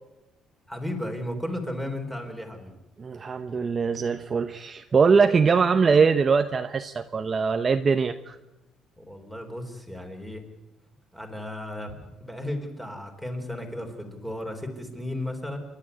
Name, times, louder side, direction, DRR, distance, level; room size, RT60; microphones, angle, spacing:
voice 1, 0.7-2.7 9.0-10.4 11.1-15.6, left 1 dB, 5° left, 4 dB, 4.0 m, -34 dB
voice 2, 3.0-8.4, right 5 dB, 30° right, 8 dB, 0.8 m, -22 dB
27.5 x 12.0 x 9.7 m, 0.97 s
cardioid pair, 130°, 0 cm